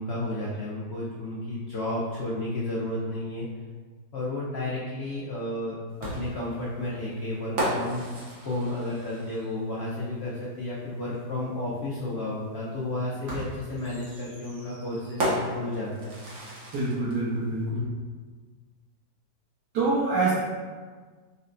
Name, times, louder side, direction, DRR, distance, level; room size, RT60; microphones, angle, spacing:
voice 1, 0.0-3.5 4.1-16.1, left 1 dB, 75° left, -7 dB, 0.6 m, -32 dB
sound 1, 6.0-9.7 11.1-11.2 13.3-17.2, right 1 dB, 55° right, 1.2 m, -34 dB
voice 2, 16.7-17.9 19.7-20.3, right 3 dB, 80° right, -12 dB, 1.6 m, -25 dB
5.3 x 2.1 x 2.5 m, 1.5 s
omnidirectional pair, 1.8 m